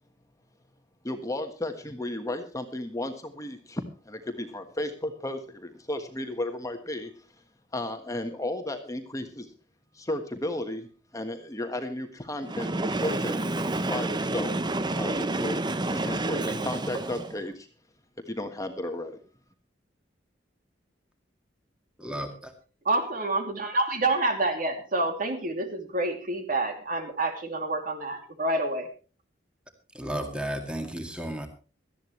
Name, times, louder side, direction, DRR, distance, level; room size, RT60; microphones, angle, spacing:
voice 1, 1.0-7.1 7.7-9.5 9.9-10.9 11.1-14.5 15.0-17.7 18.3-19.2, left 1 dB, 20° left, 6 dB, 1.4 m, -34 dB
Train, 12.4-17.4, right 2 dB, 25° right, 0.8 m, -29 dB
voice 2, 22.0-22.5 29.9-31.5, right 1 dB, 5° right, 5 dB, 2.2 m, -33 dB
voice 3, 22.8-28.9, right 2 dB, 50° right, 5 dB, 2.7 m, -28 dB
18.0 x 13.5 x 3.1 m, 0.35 s
head